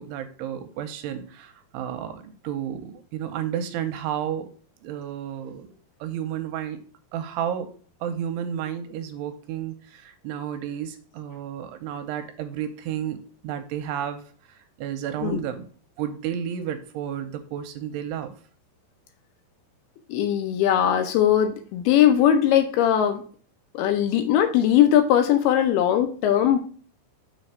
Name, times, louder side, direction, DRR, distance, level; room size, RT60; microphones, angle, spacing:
voice 1, 0.0-4.5 4.8-5.7 6.0-6.8 7.1-7.7 8.0-15.6 16.0-18.3, right 9 dB, 85° right, 8 dB, 2.7 m, -32 dB
voice 2, 20.1-23.2 23.7-26.6, left 10 dB, 80° left, 7 dB, 2.4 m, -20 dB
7.1 x 3.4 x 5.4 m, 0.43 s
omnidirectional pair, 4.8 m